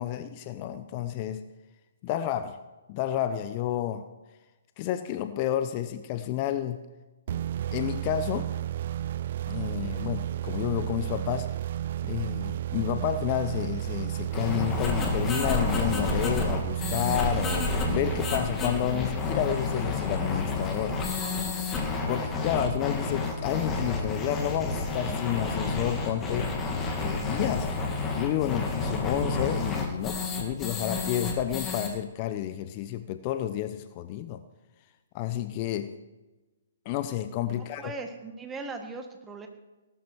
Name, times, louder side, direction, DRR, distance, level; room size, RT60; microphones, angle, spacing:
voice 1, 0.0-1.5 2.0-2.6 2.9-4.1 4.8-6.8 7.7-8.5 9.5-11.5 12.0-21.0 22.1-26.5 26.9-27.7 28.1-34.4 35.1-35.9 36.8-37.9, left 11 dB, 35° left, 11 dB, 0.8 m, -30 dB
sound 1, 7.3-19.0, right 12 dB, 50° right, 0.4 m, -32 dB
sound 2, 14.3-31.9, left 3 dB, 20° left, 2.6 m, -30 dB
voice 2, 37.5-39.5, right 3 dB, 10° right, 4 dB, 1.9 m, -39 dB
18.0 x 12.5 x 4.8 m, 1.1 s
figure-of-eight pair, 130°, 0 cm